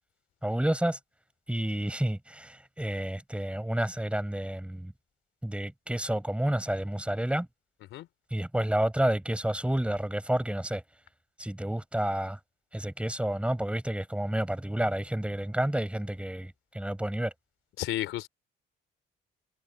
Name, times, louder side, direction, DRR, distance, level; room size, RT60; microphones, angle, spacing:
voice 1, 0.4-1.0 1.5-4.9 5.4-7.5 8.3-10.8 11.4-12.4 12.7-17.3, right 1 dB, 5° right, 4.5 m, -30 dB
voice 2, 17.8-18.3, left 14 dB, 90° left, 3.1 m, -32 dB
cardioid pair, 90°, 20 cm